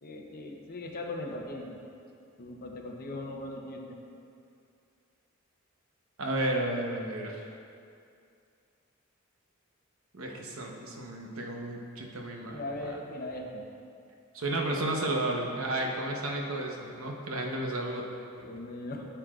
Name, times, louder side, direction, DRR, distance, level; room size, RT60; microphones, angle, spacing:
voice 1, 0.0-1.8 2.4-4.0 12.5-13.6 18.4-19.1, left 2 dB, 45° left, 1 dB, 0.8 m, -39 dB
voice 2, 6.2-7.4 10.1-12.9 14.3-18.0, right 1 dB, 75° right, 0 dB, 1.0 m, -32 dB
11.0 x 7.0 x 2.4 m, 2.5 s
head